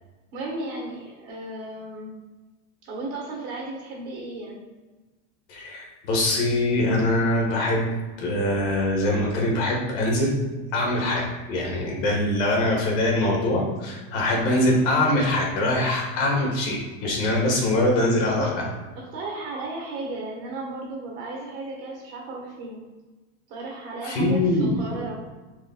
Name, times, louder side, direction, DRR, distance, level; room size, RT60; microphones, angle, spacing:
voice 1, 0.3-2.1 2.8-4.6 18.2-18.5 18.9-22.8 23.5-25.2, right 2 dB, 40° right, -1 dB, 1.3 m, -34 dB
voice 2, 5.5-10.4 10.7-18.7 24.0-25.0, left 1 dB, 70° left, -1 dB, 1.5 m, -23 dB
4.7 x 4.0 x 2.3 m, 1.2 s
supercardioid pair, 160°, 37 cm